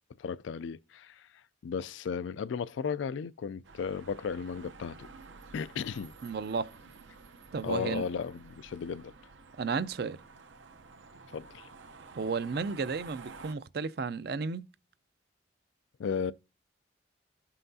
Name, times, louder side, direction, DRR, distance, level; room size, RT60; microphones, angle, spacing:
voice 1, 0.2-5.1 5.5-6.1 7.6-9.1 11.3-11.7 16.0-16.3, left 6 dB, 80° left, 0.3 m, -35 dB
sound 1, 3.6-13.6, right 4 dB, 85° right, 0.7 m, -51 dB
voice 2, 6.2-6.7 7.5-8.0 9.6-10.2 12.2-14.6, right 5 dB, 55° right, 0.4 m, -33 dB
14.0 x 5.7 x 2.7 m
head